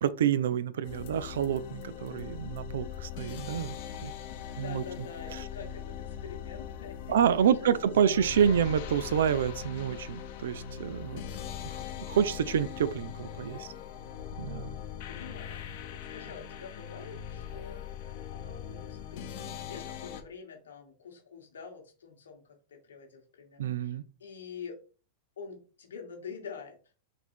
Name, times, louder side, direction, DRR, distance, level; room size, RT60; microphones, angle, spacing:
voice 1, 0.0-3.7 4.0-4.1 4.6-4.8 7.1-11.2 11.7-13.7 14.4-14.8 23.6-24.0, right 8 dB, 80° right, 0.4 m, -28 dB
sound 1, 0.8-20.2, left 8 dB, 60° left, 0.8 m, -41 dB
voice 2, 4.5-8.3 14.6-24.8 25.4-26.8, left 6 dB, 90° left, 1.4 m, -46 dB
3.9 x 2.7 x 4.5 m
hypercardioid pair, 115°, 0 cm